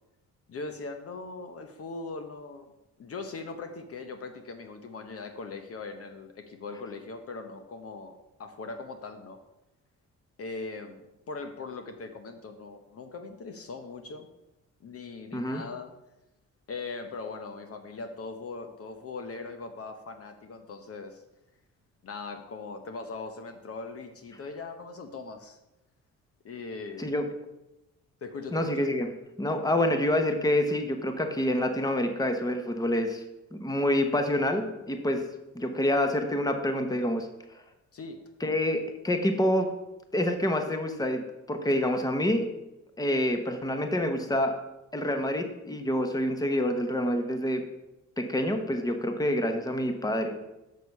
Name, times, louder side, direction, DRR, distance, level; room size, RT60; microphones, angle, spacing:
voice 1, 0.5-2.7 3.0-9.4 10.4-14.3 14.8-15.9 16.7-21.2 22.0-25.6 26.4-27.1 28.2-28.6 37.9-38.2, left 3 dB, 50° left, 6 dB, 0.9 m, -40 dB
voice 2, 28.5-29.1 29.4-33.2 33.5-35.3 35.5-37.3 38.4-39.7 40.1-42.5 43.0-44.5 44.9-47.6 48.2-50.4, left 1 dB, 10° left, 6 dB, 1.0 m, -27 dB
6.6 x 6.4 x 5.4 m, 0.95 s
cardioid pair, 90°, 30 cm